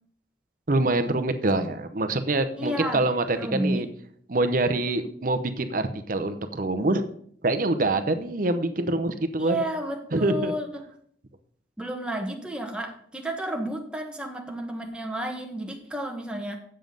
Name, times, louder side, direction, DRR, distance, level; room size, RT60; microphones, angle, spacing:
voice 1, 0.7-3.9 4.3-7.0 7.4-9.6 10.1-10.5, right 2 dB, 45° right, 9 dB, 0.8 m, -25 dB
voice 2, 2.6-3.0 3.3-3.8 9.4-10.8 11.8-16.6, right 1 dB, 5° right, 1 dB, 1.2 m, -31 dB
7.7 x 7.3 x 5.3 m, 0.64 s
head